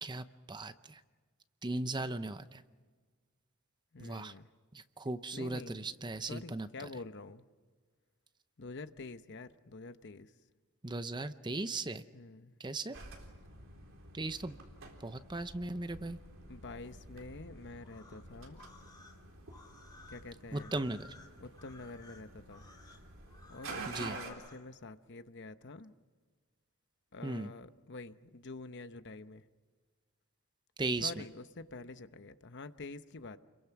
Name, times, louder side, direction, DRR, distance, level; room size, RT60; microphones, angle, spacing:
voice 1, 0.0-1.0 1.6-2.6 4.0-4.3 4.7-6.7 10.8-12.0 12.6-13.0 14.1-14.6 15.0-16.2 20.5-21.1 23.9-24.2 27.2-27.5 30.8-31.2, right 2 dB, 20° right, 0.7 m, -37 dB
voice 2, 3.9-4.5 5.3-5.9 6.3-7.4 8.6-10.3 12.1-12.5 16.5-18.6 20.1-20.7 21.4-22.6 23.5-25.9 27.1-29.4 31.0-33.4, left 3 dB, 55° left, 0.9 m, -47 dB
sound 1, 12.9-24.3, right 3 dB, 60° right, 4.0 m, -49 dB
sound 2, 17.8-24.7, left 3 dB, 20° left, 2.8 m, -57 dB
30.0 x 22.5 x 5.9 m
head